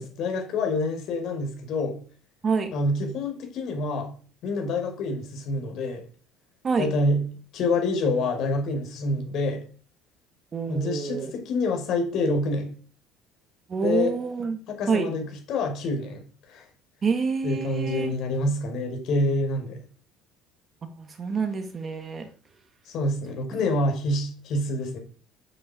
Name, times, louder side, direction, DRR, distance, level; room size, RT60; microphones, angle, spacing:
voice 1, 0.0-2.0 2.7-4.1 4.4-6.0 6.8-7.2 7.5-9.6 10.7-12.7 13.8-14.1 14.7-16.6 17.4-19.8 22.9-25.0, left 2 dB, 45° left, 4 dB, 6.0 m, -27 dB
voice 2, 10.5-11.3 13.7-14.6 14.9-15.1 17.0-18.1 20.8-22.3, right 5 dB, 25° right, 8 dB, 1.8 m, -27 dB
10.0 x 10.0 x 9.4 m, 0.42 s
cardioid pair, 160°, 0 cm